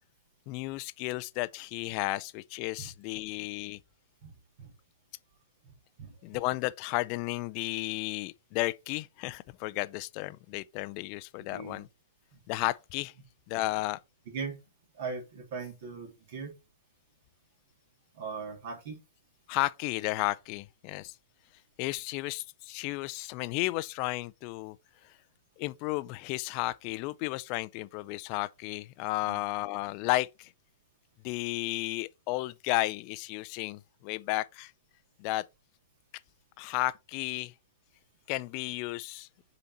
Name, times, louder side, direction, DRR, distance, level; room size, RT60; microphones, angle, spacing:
voice 1, 0.5-3.8 6.2-11.9 12.5-13.1 13.5-14.0 19.5-21.1 21.8-24.8 25.0-25.1 25.6-30.5 31.2-34.7 35.2-35.4 36.6-37.5 38.3-39.3, left 20 dB, 40° left, 0.4 m, -33 dB
voice 2, 11.5-11.8 12.3-12.4 14.3-14.6 15.0-16.5 18.1-19.0 29.2-29.4, right 5 dB, 55° right, 2.8 m, -39 dB
6.9 x 3.9 x 4.3 m
hypercardioid pair, 125°, 0 cm